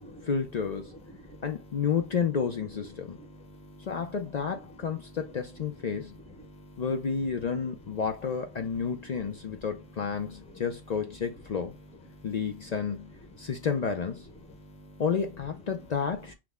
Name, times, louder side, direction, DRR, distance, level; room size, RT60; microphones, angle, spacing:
voice 1, 0.2-0.9 1.4-3.2 3.8-6.2 6.8-11.7 12.2-14.3 15.0-16.3, left 6 dB, 55° left, 0.4 m, -31 dB
voice 2, 3.1-3.9 6.5-6.8 12.1-12.3 13.4-13.5 14.6-15.0, equal, 5° left, 0.7 m, -50 dB
6.0 x 2.1 x 3.4 m
omnidirectional pair, 1.2 m